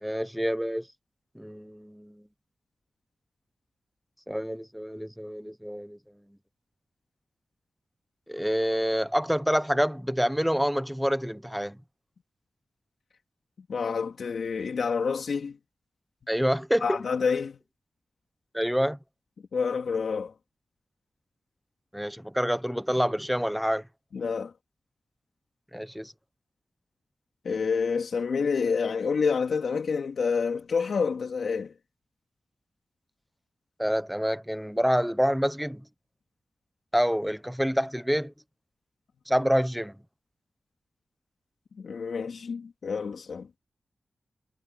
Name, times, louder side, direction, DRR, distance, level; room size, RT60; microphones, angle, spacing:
voice 1, 0.0-0.9 1.4-2.2 4.3-6.0 8.3-11.8 16.3-17.0 18.5-19.0 21.9-23.8 25.7-26.1 33.8-35.8 36.9-38.3 39.3-39.9, equal, ahead, 0.9 m, -27 dB
voice 2, 13.7-15.6 16.8-17.6 19.5-20.3 24.1-24.5 27.4-31.7 41.8-43.5, left 5 dB, 80° left, 3.4 m, -28 dB
wide cardioid pair, 135°, 0 cm